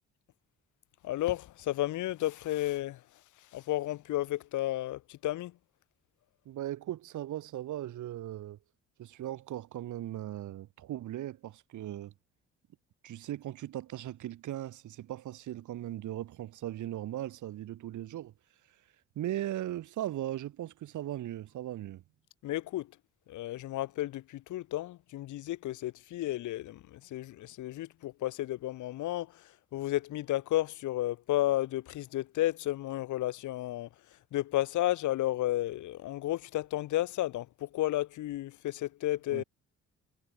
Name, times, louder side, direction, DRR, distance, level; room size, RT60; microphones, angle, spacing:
voice 1, 1.0-3.0 3.5-5.5 22.4-22.9 23.3-29.3 29.7-33.9 34.3-39.4, left 15 dB, 75° left, 0.9 m, -32 dB
voice 2, 6.4-8.6 9.0-12.1 13.0-18.3 19.2-22.0 39.3-39.4, right 13 dB, 75° right, 2.7 m, -38 dB
cardioid pair, 90°, 30 cm